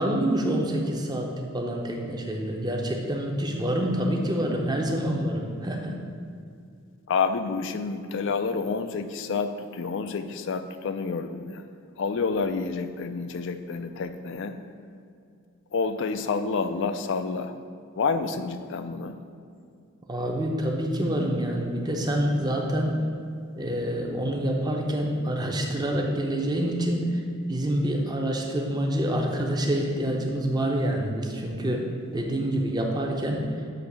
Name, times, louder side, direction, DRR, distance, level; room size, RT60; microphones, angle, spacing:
voice 1, 0.0-6.0 20.1-22.9 23.6-27.2 27.5-31.9 32.1-33.5, right 1 dB, 20° right, 1 dB, 0.7 m, -27 dB
voice 2, 7.1-11.6 12.0-14.6 15.7-17.5 18.0-19.2, left 4 dB, 60° left, 9 dB, 0.4 m, -29 dB
7.9 x 3.1 x 6.0 m, 2.4 s
head